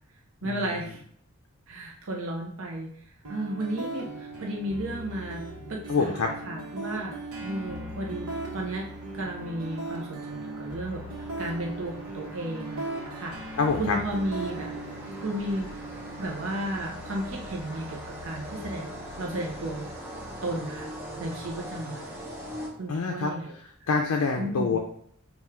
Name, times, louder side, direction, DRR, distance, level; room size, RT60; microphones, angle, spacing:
voice 1, 0.4-1.0 1.7-3.0 3.3-5.4 5.7-8.9 9.1-11.0 11.4-14.7 15.2-15.9 16.2-19.9 20.4-20.9 21.2-22.1 22.8-23.5 24.4-24.8, right 1 dB, 60° right, 0 dB, 0.6 m, -34 dB
sound 1, 3.3-21.2, right 2 dB, 85° right, 1.0 m, -39 dB
voice 2, 5.9-6.3 13.6-14.0 22.9-23.3 23.9-24.8, left 4 dB, 70° left, 2 dB, 0.4 m, -26 dB
sound 2, 6.4-23.2, equal, 10° right, 0.6 m, -43 dB
3.6 x 2.3 x 4.3 m, 0.64 s
head